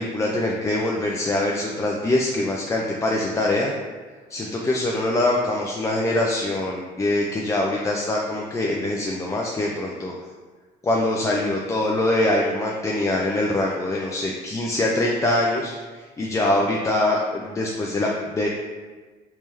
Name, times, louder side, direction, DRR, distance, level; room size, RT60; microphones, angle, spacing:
voice 1, 0.0-3.7 4.3-10.1 10.8-18.5, left 1 dB, 20° left, -2 dB, 0.3 m, -23 dB
3.3 x 3.3 x 2.9 m, 1.4 s
cardioid pair, 110°, 17 cm